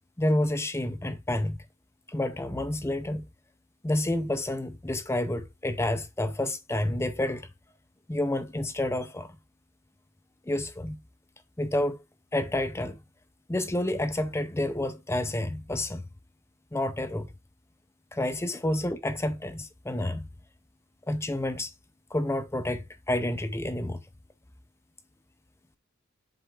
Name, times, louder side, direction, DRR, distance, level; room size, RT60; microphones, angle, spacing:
voice 1, 0.2-1.6 2.1-3.3 3.8-7.5 8.1-9.3 10.5-11.0 11.6-12.0 12.3-13.0 13.5-16.0 16.7-17.3 18.1-20.3 21.1-21.7 22.1-24.0, left 1 dB, 15° left, 0.6 m, -29 dB
7.1 x 4.4 x 3.4 m
head